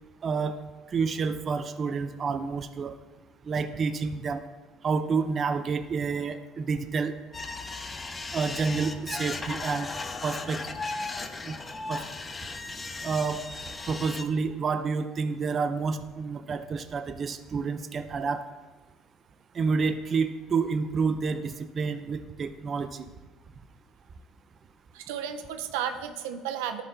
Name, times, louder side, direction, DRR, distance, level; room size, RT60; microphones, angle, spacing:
voice 1, 0.2-0.6 0.9-2.9 3.4-4.4 4.8-7.1 8.3-9.9 10.2-10.6 11.4-11.6 11.9-12.0 13.0-13.4 13.9-18.4 19.5-23.1, right 5 dB, 40° right, 8 dB, 0.5 m, -29 dB
sound 1, 7.3-14.2, left 3 dB, 25° left, 0.6 m, -36 dB
voice 2, 24.9-26.8, right 9 dB, 90° right, 8 dB, 0.6 m, -33 dB
12.0 x 4.4 x 3.9 m, 1.2 s
supercardioid pair, 90°, 0 cm